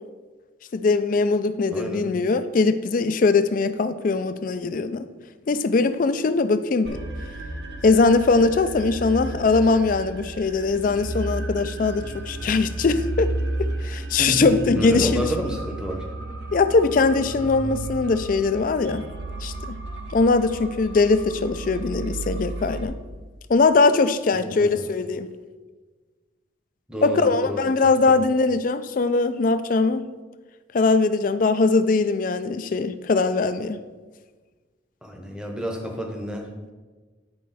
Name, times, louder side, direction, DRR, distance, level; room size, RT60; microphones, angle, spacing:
voice 1, 0.7-5.1 5.5-7.0 7.8-13.3 13.6-15.3 16.5-19.0 19.4-19.8 20.1-23.0 23.5-25.3 27.0-30.1 30.7-33.8, left 3 dB, 45° left, 11 dB, 0.4 m, -21 dB
voice 2, 1.7-2.0 14.2-16.0 24.4-24.7 26.9-27.7 28.1-28.2 35.0-36.7, equal, 5° right, 2 dB, 0.8 m, -30 dB
sound 1, 6.8-22.8, right 2 dB, 60° right, 0.9 m, -33 dB
9.6 x 4.6 x 4.1 m, 1.4 s
head